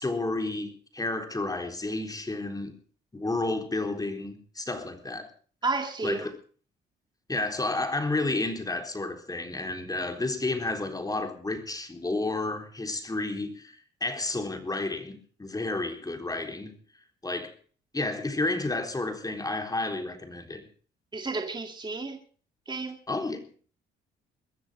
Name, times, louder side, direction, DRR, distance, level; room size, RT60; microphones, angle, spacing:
voice 1, 0.0-2.8 3.1-5.3 6.0-6.4 7.3-16.8 17.2-17.5 17.9-20.7 23.1-23.6, left 2 dB, 20° left, 3.9 m, -31 dB
voice 2, 5.6-6.3 21.1-22.2 22.7-23.0, right 3 dB, 20° right, 2.1 m, -31 dB
22.0 x 14.0 x 3.7 m
cardioid pair, 90°, 20 cm